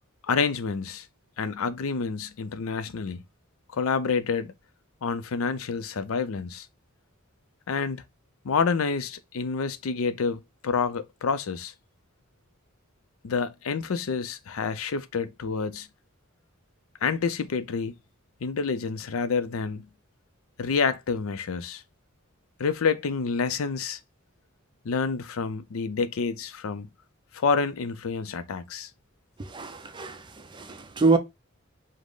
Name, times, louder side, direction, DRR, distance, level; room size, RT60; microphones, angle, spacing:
voice 1, 0.2-1.1 1.4-3.2 3.7-4.5 5.0-6.7 7.7-8.0 8.4-11.7 13.2-15.9 17.0-17.9 18.4-19.9 20.6-21.8 22.6-24.0 24.8-26.9 27.3-28.9, left 5 dB, 85° left, 0.5 m, -28 dB
voice 2, 29.4-31.2, right 3 dB, 25° right, 0.6 m, -26 dB
5.1 x 2.1 x 3.8 m
head